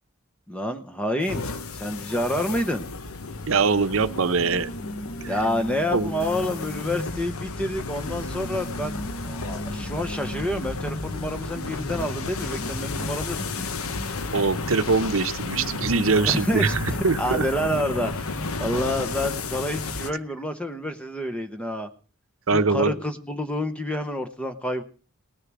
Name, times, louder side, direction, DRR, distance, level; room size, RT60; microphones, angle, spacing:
voice 1, 0.5-2.9 5.3-13.7 16.2-21.9 22.5-24.8, left 1 dB, 5° left, 7 dB, 0.9 m, -28 dB
sound 1, 1.2-20.1, left 3 dB, 80° left, 1.0 m, -33 dB
voice 2, 3.5-4.7 5.9-6.1 14.3-17.5 22.5-22.9, right 4 dB, 70° right, 12 dB, 0.8 m, -22 dB
sound 2, 4.1-7.3 8.1-15.0 15.6-19.0, right 1 dB, 35° left, 1.5 m, -39 dB
19.0 x 6.7 x 6.1 m, 0.39 s
head